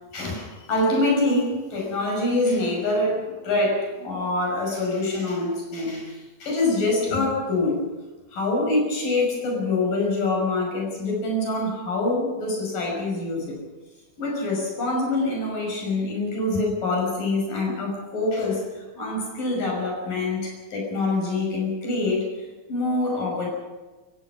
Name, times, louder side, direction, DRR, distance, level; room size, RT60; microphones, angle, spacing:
voice 1, 0.1-7.9 8.3-13.6 14.2-23.5, left 2 dB, 65° left, -1 dB, 7.5 m, -25 dB
29.0 x 15.0 x 6.0 m, 1.2 s
omnidirectional pair, 4.1 m